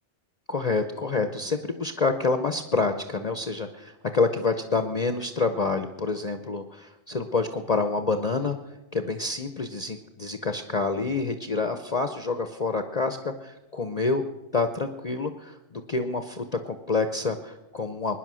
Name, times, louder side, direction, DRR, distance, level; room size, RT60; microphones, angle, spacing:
voice 1, 0.5-8.6 8.9-14.2 14.5-18.2, left 4 dB, 40° left, 8 dB, 0.8 m, -27 dB
22.5 x 10.0 x 6.3 m, 1.0 s
omnidirectional pair, 1.2 m